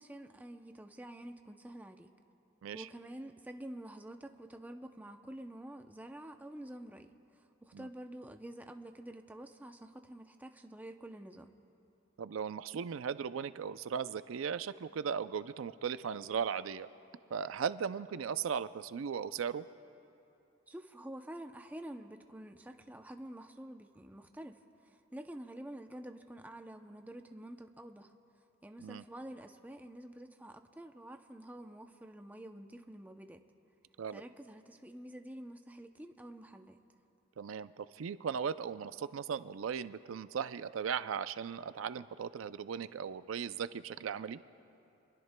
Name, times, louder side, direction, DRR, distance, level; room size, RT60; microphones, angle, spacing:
voice 1, 0.0-2.1 2.7-11.5 20.7-24.6 24.8-28.1 28.6-33.4 34.1-36.8, right 1 dB, 10° right, 6 dB, 0.5 m, -48 dB
voice 2, 12.2-16.9 17.3-19.7 28.8-29.0 34.0-34.2 37.4-44.4, right 7 dB, 90° right, 14 dB, 0.4 m, -37 dB
27.0 x 21.0 x 2.2 m, 2.7 s
head